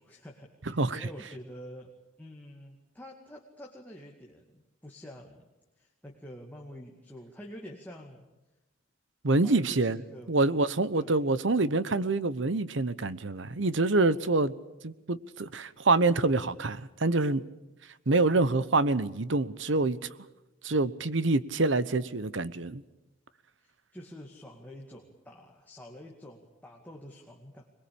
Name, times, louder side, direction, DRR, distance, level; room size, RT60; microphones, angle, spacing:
voice 1, 0.0-5.5 5.8-8.3 9.4-10.7 10.9-11.2 23.6-27.7, equal, 10° left, 2.2 m, -47 dB
voice 2, 9.2-10.0 10.3-14.5 14.8-17.4 18.1-20.0 20.6-22.8, right 3 dB, 65° right, 1.0 m, -26 dB
22.0 x 21.5 x 8.7 m
head